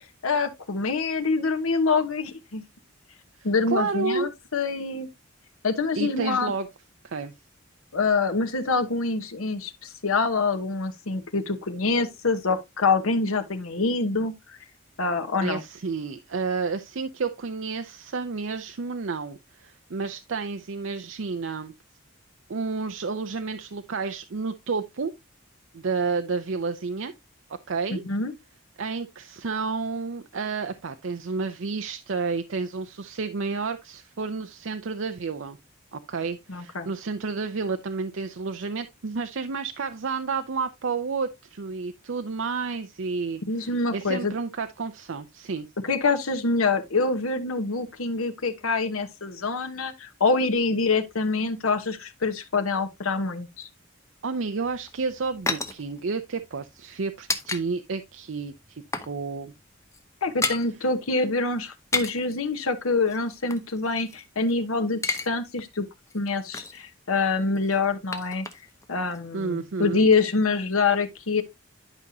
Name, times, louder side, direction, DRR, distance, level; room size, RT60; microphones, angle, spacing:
voice 1, 0.2-2.6 3.4-5.1 5.6-6.5 7.9-14.6 15.0-15.6 27.9-28.3 36.5-36.9 43.5-44.3 45.8-53.7 60.2-65.9 66.1-68.5 68.9-71.4, left 4 dB, 90° left, 1.1 m, -25 dB
voice 2, 3.7-4.3 6.0-6.7 7.0-7.3 15.4-21.7 22.5-25.1 25.7-27.1 27.5-28.0 28.8-35.6 35.9-45.7 54.2-59.5 69.3-70.1, right 4 dB, 65° right, 0.6 m, -30 dB
sound 1, 54.6-57.6 57.9-58.1 58.5-59.2 59.4-59.6 59.8-60.7 61.7-62.3 63.1-64.5 64.8-65.3 65.6-65.7 66.1-66.9 67.6-68.9 69.1-69.2, left 3 dB, 15° left, 0.7 m, -32 dB
11.0 x 5.4 x 2.7 m
head